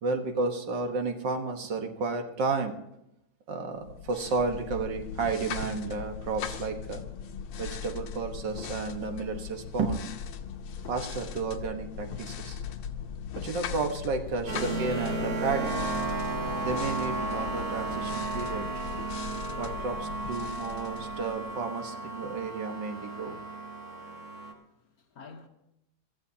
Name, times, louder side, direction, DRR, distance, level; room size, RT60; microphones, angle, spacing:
voice 1, 0.0-2.7 3.5-7.0 7.6-10.1 10.9-12.6 13.4-15.8 16.6-18.8 19.6-23.4, right 4 dB, 65° right, 1.9 m, -32 dB
sound 1, 3.8-21.7, left 7 dB, 85° left, 1.7 m, -39 dB
sound 2, 14.5-24.5, right 2 dB, 50° right, 1.9 m, -34 dB
voice 2, 23.4-25.5, left 4 dB, 55° left, 1.2 m, -53 dB
25.5 x 14.5 x 2.8 m
omnidirectional pair, 2.2 m